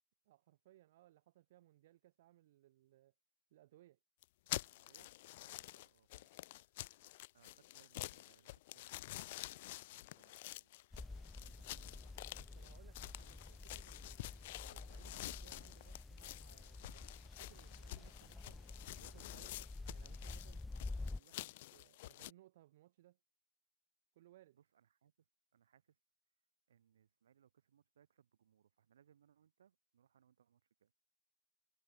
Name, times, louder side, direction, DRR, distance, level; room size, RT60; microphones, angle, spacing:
voice 1, 0.3-3.1 3.5-4.0 12.5-14.2 14.6-17.1 17.4-18.6 19.0-19.6 19.9-20.6 21.0-23.2 24.2-24.6, right 15 dB, 45° right, 1.9 m, -65 dB
sound 1, 4.2-22.3, left 18 dB, 40° left, 0.9 m, -49 dB
voice 2, 4.6-6.3 7.3-10.8 11.2-12.2 24.5-25.1 25.5-26.0 26.7-30.9, right 9 dB, 65° right, 4.7 m, -72 dB
sound 2, 10.9-21.2, left 2 dB, 5° left, 0.4 m, -50 dB
hypercardioid pair, 155°, 0 cm